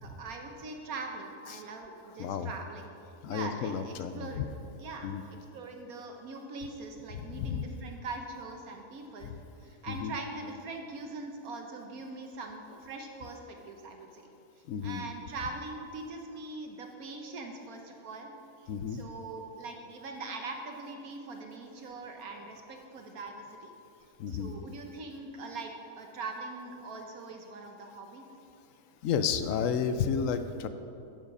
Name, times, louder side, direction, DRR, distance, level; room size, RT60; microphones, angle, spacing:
voice 1, 0.0-4.4 4.8-5.1 5.5-9.3 9.6-14.3 14.6-18.3 18.6-23.7 24.3-28.3, right 3 dB, 75° right, 3 dB, 1.3 m, -42 dB
voice 2, 3.2-4.5 5.0-5.2 7.1-7.6 9.9-10.1 14.7-15.0 18.7-19.0 24.2-24.6 29.0-30.7, left 7 dB, 70° left, 10 dB, 0.9 m, -32 dB
11.0 x 7.2 x 5.4 m, 2.7 s
omnidirectional pair, 1.6 m